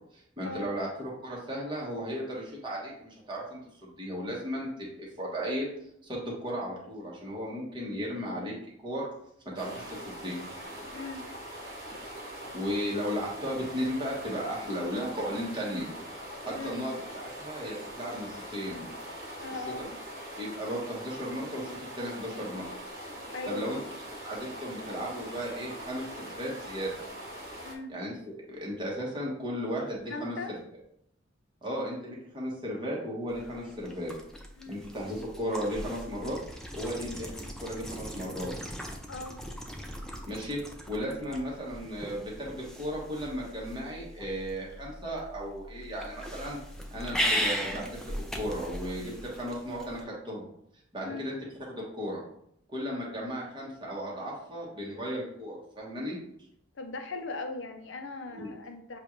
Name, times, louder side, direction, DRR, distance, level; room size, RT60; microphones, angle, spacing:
voice 1, 0.1-4.9 5.2-5.7 6.0-9.1 9.5-10.4 12.3-15.9 16.4-18.9 19.6-19.9 20.4-22.6 23.5-23.8 24.2-26.9 27.9-30.3 31.6-34.1 34.7-36.4 36.7-38.5 40.3-40.6 40.9-46.6 46.9-50.5 50.9-51.3 51.7-52.2 52.7-56.2 58.3-58.5, equal, 25° right, -4 dB, 1.3 m, -35 dB
sound 1, 9.6-27.8, equal, 50° right, 1.2 m, -42 dB
voice 2, 10.9-11.3 16.5-16.8 19.4-19.9 23.3-23.9 27.6-27.9 30.1-30.5 34.6-34.8 39.1-39.4 51.0-51.3 56.7-59.0, left 3 dB, 70° left, 5 dB, 0.7 m, -39 dB
sound 2, 33.3-50.0, equal, 5° left, 0.5 m, -38 dB
7.0 x 2.5 x 3.1 m, 0.73 s
head